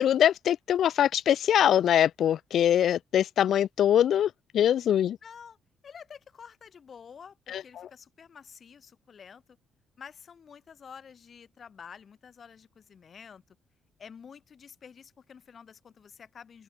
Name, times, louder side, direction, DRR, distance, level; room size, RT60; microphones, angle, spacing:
voice 1, 0.0-5.2 7.5-7.9, left 10 dB, 70° left, 0.4 m, -23 dB
voice 2, 5.2-5.6 5.8-9.4 10.0-13.4 14.0-16.6, left 7 dB, 50° left, 3.7 m, -49 dB
open air
cardioid pair, 90°, 0 cm